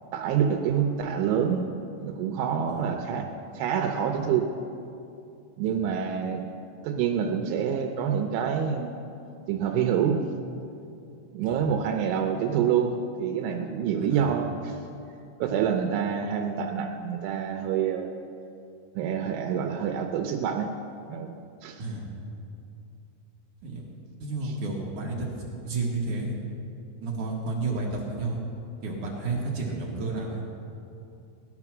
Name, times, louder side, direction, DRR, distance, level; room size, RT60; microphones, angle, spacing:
voice 1, 0.1-1.6 2.0-3.3 3.5-4.5 5.6-6.4 6.8-8.9 9.5-10.2 11.3-14.8 15.4-18.1 19.0-20.7 21.1-21.3 21.6-21.8 24.4-24.5, right 8 dB, 80° right, 3 dB, 3.2 m, -27 dB
voice 2, 24.2-26.4 27.0-28.4 28.8-30.4, right 3 dB, 60° right, -2 dB, 2.3 m, -31 dB
17.5 x 11.0 x 6.0 m, 2.7 s
omnidirectional pair, 5.5 m